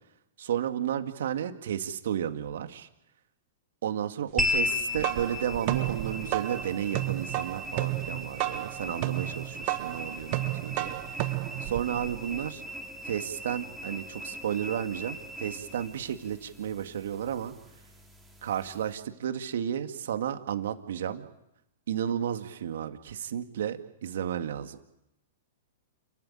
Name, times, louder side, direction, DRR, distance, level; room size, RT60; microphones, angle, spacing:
voice 1, 0.4-2.9 3.8-12.6 13.0-17.5 18.4-21.3 21.9-24.8, right 9 dB, 70° right, 8 dB, 2.1 m, -33 dB
sound 1, 4.4-19.0, left 2 dB, 5° right, 4.9 m, -37 dB
sound 2, 4.7-12.4, right 20 dB, 50° right, 0.9 m, -33 dB
29.5 x 14.0 x 9.2 m, 0.85 s
hypercardioid pair, 120°, 0 cm